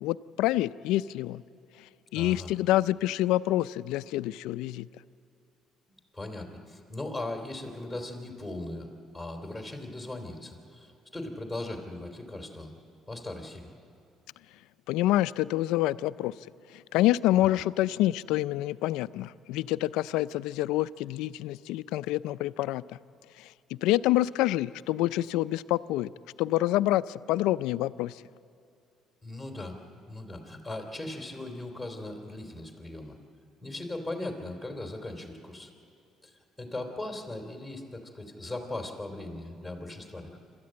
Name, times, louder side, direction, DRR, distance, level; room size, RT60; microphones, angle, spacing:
voice 1, 0.0-1.4 2.1-4.9 14.9-16.3 16.7-23.0 23.4-23.5 23.8-26.1 26.4-28.2, left 15 dB, 85° left, 16 dB, 0.4 m, -27 dB
voice 2, 2.1-2.5 6.1-12.7 13.1-13.7 17.4-17.6 29.2-29.8 30.1-33.2 33.6-35.7 36.2-40.4, left 2 dB, ahead, 2 dB, 3.2 m, -38 dB
26.5 x 13.0 x 8.8 m, 2.5 s
cardioid pair, 115°, 0 cm